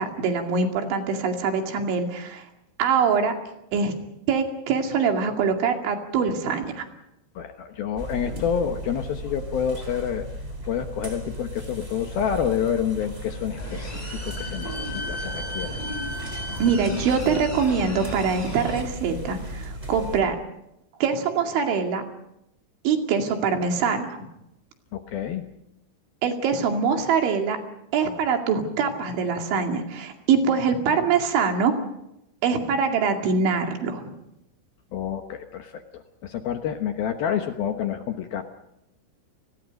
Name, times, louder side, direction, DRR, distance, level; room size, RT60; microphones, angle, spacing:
voice 1, 0.0-2.5 2.8-3.3 3.7-3.9 4.3-6.9 8.3-8.4 16.6-20.4 21.0-22.0 22.8-24.2 26.2-27.6 27.9-31.7 32.4-34.0, right 5 dB, 75° right, 4 dB, 4.7 m, -23 dB
voice 2, 7.4-10.3 10.7-15.8 24.9-25.4 34.9-38.4, left 8 dB, 70° left, 6 dB, 2.5 m, -28 dB
sound 1, 8.0-20.2, equal, 15° right, 3.7 m, -36 dB
sound 2, 13.6-18.8, equal, 10° left, 3.5 m, -33 dB
30.0 x 20.0 x 5.3 m, 0.83 s
omnidirectional pair, 5.5 m